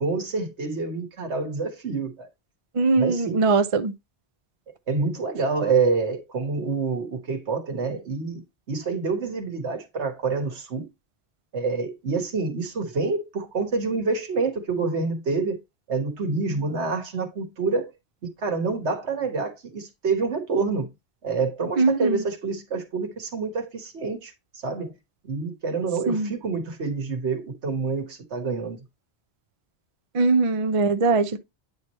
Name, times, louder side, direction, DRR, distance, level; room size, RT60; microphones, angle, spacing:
voice 1, 0.0-2.3 2.9-3.4 4.9-8.4 8.7-10.9 11.5-15.6 15.9-17.9 18.4-20.9 21.2-24.9 25.2-28.8, right 4 dB, 80° right, 1.7 m, -27 dB
voice 2, 2.7-3.9 21.8-22.2 26.1-26.3 30.1-31.4, right 3 dB, 40° right, 0.5 m, -21 dB
8.9 x 3.1 x 4.2 m
omnidirectional pair, 1.1 m